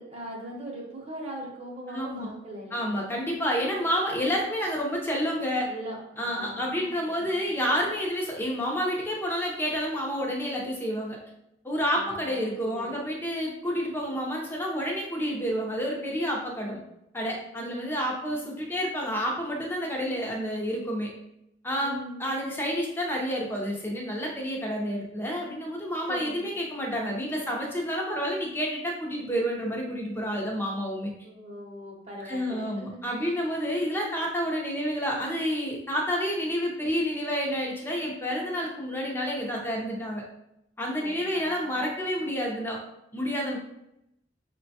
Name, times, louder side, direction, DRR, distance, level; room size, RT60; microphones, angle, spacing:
voice 1, 0.0-3.1 5.7-6.9 7.2-7.4 11.9-13.0 17.6-17.8 18.2-18.3 21.8-22.2 26.1-26.5 31.2-33.4 41.0-41.7, right 1 dB, 35° right, -2 dB, 0.8 m, -41 dB
voice 2, 1.9-2.3 2.7-5.7 6.2-11.2 11.6-16.8 17.1-21.1 21.6-21.9 22.2-31.1 32.2-40.2 40.8-42.8 43.1-43.6, equal, 10° left, -1 dB, 0.6 m, -29 dB
4.8 x 2.2 x 2.7 m, 0.82 s
head